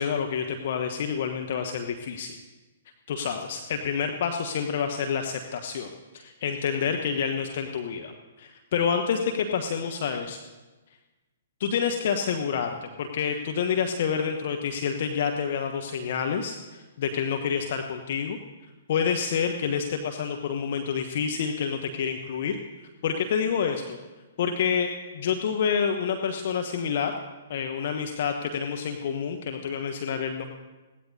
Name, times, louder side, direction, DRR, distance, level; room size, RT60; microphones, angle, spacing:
voice 1, 0.0-2.4 3.1-8.1 8.4-10.4 11.6-18.4 18.9-22.6 23.0-24.0 24.4-27.1 27.5-30.4, left 7 dB, 50° left, 5 dB, 1.0 m, -28 dB
21.0 x 17.0 x 2.8 m, 1.2 s
figure-of-eight pair, 120°, 0 cm